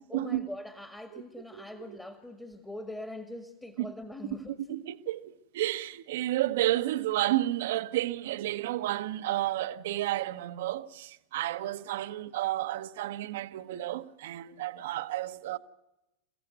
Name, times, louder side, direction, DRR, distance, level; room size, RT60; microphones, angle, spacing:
voice 1, 0.1-4.6, left 1 dB, 5° left, 1.9 m, -42 dB
voice 2, 1.5-2.0 3.8-3.9 4.7-15.6, right 15 dB, 55° right, 1.1 m, -31 dB
29.5 x 16.0 x 9.4 m
figure-of-eight pair, 90°, 0 cm